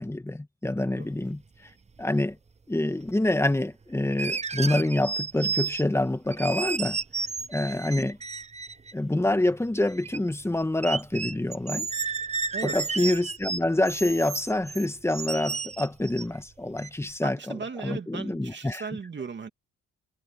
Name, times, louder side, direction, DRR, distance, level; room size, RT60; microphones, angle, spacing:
voice 1, 0.0-1.7 2.0-2.4 2.7-7.0 7.5-8.2 8.9-11.9 12.6-17.5 17.8-18.8, left 1 dB, 10° left, 1.7 m, -26 dB
sound 1, 2.0-2.1 4.1-6.0 6.3-8.9 9.5-10.2 10.5-10.6 10.8-16.4 16.8-16.9, right 4 dB, 20° right, 0.9 m, -32 dB
voice 2, 17.2-19.5, right 5 dB, 35° right, 2.8 m, -37 dB
cardioid pair, 90°, 30 cm